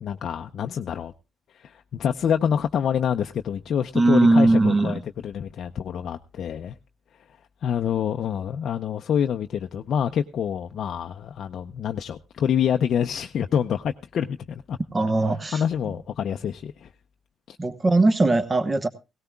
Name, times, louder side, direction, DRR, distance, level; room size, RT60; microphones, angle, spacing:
voice 1, 0.0-1.1 1.5-6.7 7.6-14.8 15.5-16.9 17.5-17.6, left 8 dB, 55° left, 0.6 m, -26 dB
voice 2, 3.9-5.0 14.9-15.6 17.6-18.9, right 2 dB, 20° right, 1.1 m, -19 dB
17.5 x 17.5 x 2.3 m
cardioid pair, 125°, 0 cm